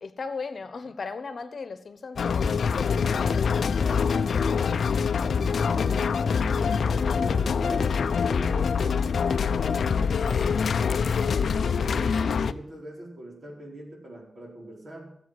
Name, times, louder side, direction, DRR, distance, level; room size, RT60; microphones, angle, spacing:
voice 1, 0.0-4.7, left 4 dB, 50° left, 1.2 m, -38 dB
sound 1, 2.2-12.5, left 6 dB, 70° left, 0.6 m, -25 dB
voice 2, 5.5-6.8 7.1-10.7 11.1-15.2, right 1 dB, 45° right, 4.6 m, -41 dB
14.0 x 8.5 x 8.1 m
wide cardioid pair, 125°, 0 cm